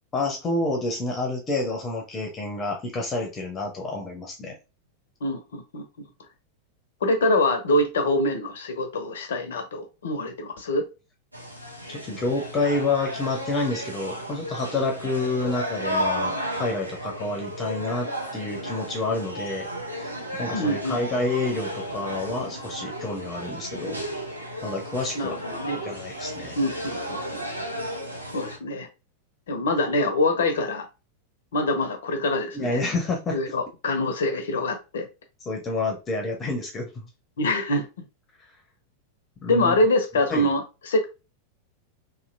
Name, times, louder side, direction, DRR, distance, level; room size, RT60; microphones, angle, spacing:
voice 1, 0.1-4.6 11.9-19.7 20.0-20.1 20.4-24.0 24.6-25.4 25.8-26.5 32.5-33.5 35.5-37.1 39.4-39.7 40.3-40.5, left 2 dB, 20° left, 1 dB, 0.8 m, -28 dB
voice 2, 5.2-6.1 7.0-10.8 20.5-21.0 25.1-25.8 26.6-27.2 28.3-28.9 29.5-30.9 31.5-32.8 33.3-35.1 37.4-37.9 39.5-41.0, left 1 dB, 60° left, 6 dB, 0.7 m, -25 dB
sound 1, 11.3-28.6, equal, 85° right, 0.7 m, -33 dB
2.9 x 2.7 x 2.5 m, 0.29 s
figure-of-eight pair, 90°, 0 cm